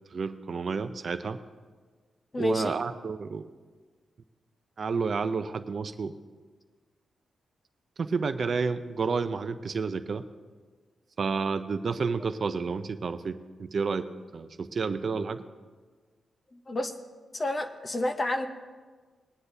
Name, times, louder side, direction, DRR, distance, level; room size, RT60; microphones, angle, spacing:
voice 1, 0.1-1.4 2.4-3.5 4.8-6.2 8.0-10.2 11.2-14.1 14.3-15.4, right 5 dB, 40° right, 10 dB, 0.5 m, -30 dB
voice 2, 2.3-2.7 16.7-16.9 17.3-18.5, left 1 dB, 25° left, 7 dB, 0.7 m, -29 dB
21.0 x 9.8 x 2.7 m, 1.4 s
wide cardioid pair, 170°, 0 cm